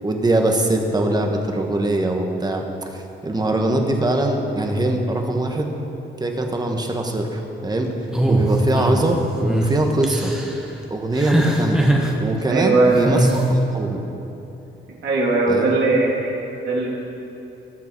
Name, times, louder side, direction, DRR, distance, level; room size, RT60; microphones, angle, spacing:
voice 1, 0.0-5.7 6.2-10.3 10.9-11.9 12.2-14.0 15.5-15.7, right 1 dB, 20° right, 3 dB, 1.5 m, -22 dB
sound 1, 8.1-9.0 9.4-9.7 10.0-10.5 11.2-12.1 13.0-13.4, right 1 dB, 5° right, 1.5 m, -20 dB
voice 2, 12.4-13.3 15.0-16.4 16.6-16.9, right 3 dB, 70° right, -4 dB, 3.2 m, -19 dB
19.0 x 6.7 x 4.7 m, 2.9 s
cardioid pair, 90°, 20 cm